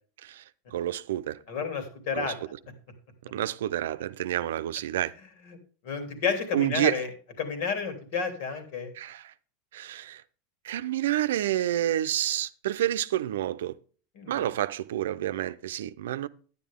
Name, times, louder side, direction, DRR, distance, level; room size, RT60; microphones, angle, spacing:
voice 1, 0.2-1.4 2.1-2.3 3.2-5.1 6.5-7.0 8.9-9.3 9.7-10.2 10.6-13.8 14.3-16.3, right 12 dB, 85° right, 0.6 m, -29 dB
voice 2, 1.5-2.4 5.5-5.6 5.8-7.1 7.4-8.9 14.2-14.5, left 5 dB, 65° left, 3.1 m, -31 dB
10.5 x 10.0 x 3.7 m
supercardioid pair, 130°, 0 cm